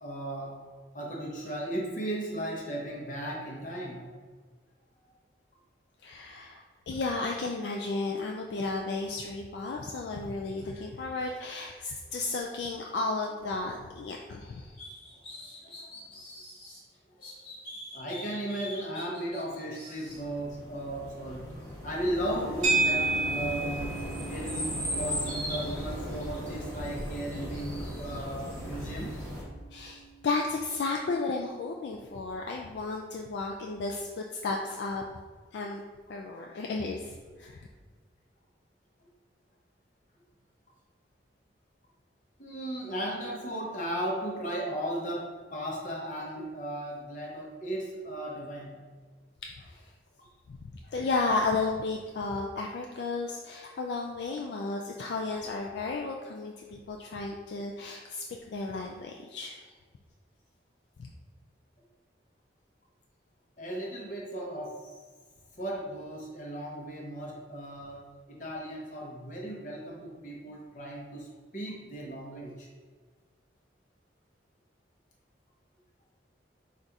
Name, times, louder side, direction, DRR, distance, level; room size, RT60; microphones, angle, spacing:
voice 1, 0.0-0.6 0.9-4.2 15.6-16.0 17.2-17.3 17.9-21.5 21.8-24.0 24.3-29.1 42.4-48.8 50.2-50.3 63.6-64.9 65.6-71.3 71.5-72.7, right 1 dB, 45° left, -2 dB, 0.8 m, -36 dB
voice 2, 6.0-14.8 29.7-35.0 35.5-35.8 36.1-37.7 49.6-49.9 50.9-59.6 61.0-61.1, left 3 dB, 65° left, 0 dB, 0.3 m, -33 dB
sound 1, 14.8-16.8 17.2-20.2, left 1 dB, 25° left, 1.2 m, -45 dB
sound 2, 20.0-29.4, equal, 10° left, 1.0 m, -37 dB
sound 3, 22.6-31.1, right 3 dB, 40° right, 0.7 m, -34 dB
4.0 x 2.5 x 4.5 m, 1.4 s
head